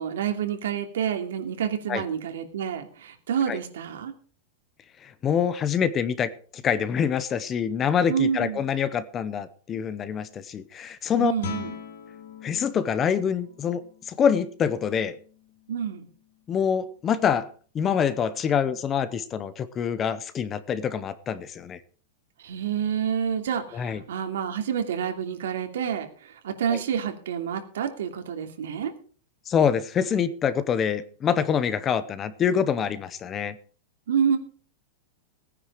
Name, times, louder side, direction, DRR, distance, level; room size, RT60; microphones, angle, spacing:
voice 1, 0.0-4.1 8.1-8.6 11.2-11.7 15.7-16.1 22.4-28.9 34.1-34.4, right 8 dB, 85° right, 5 dB, 2.8 m, -28 dB
voice 2, 5.0-11.3 12.4-13.8 14.1-15.2 16.5-17.4 17.7-21.8 23.7-24.0 26.7-26.8 29.5-33.6, left 7 dB, 15° left, 15 dB, 0.7 m, -25 dB
Guitar, 11.4-16.9, left 8 dB, 60° left, 2.9 m, -43 dB
18.0 x 9.9 x 4.9 m, 0.42 s
supercardioid pair, 175°, 0 cm